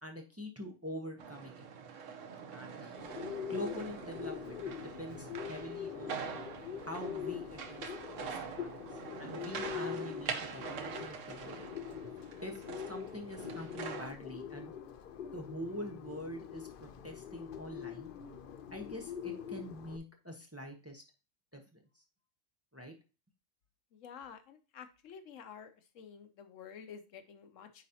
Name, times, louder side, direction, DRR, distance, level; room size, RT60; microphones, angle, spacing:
voice 1, 0.0-1.7 2.5-3.1 3.5-6.2 6.8-7.9 8.2-8.9 9.2-11.6 12.4-14.7 15.3-18.1 18.7-21.0 21.5-22.0 22.7-22.9, equal, 15° right, 2 dB, 0.8 m, -45 dB
sound 1, 1.2-14.1, right 6 dB, 80° right, 1.2 m, -44 dB
Bird, 3.0-20.0, left 9 dB, 60° left, 0.6 m, -43 dB
voice 2, 24.0-25.7 26.0-27.8, left 7 dB, 85° left, 9 dB, 1.1 m, -50 dB
9.3 x 4.1 x 2.8 m, 0.32 s
omnidirectional pair, 1.3 m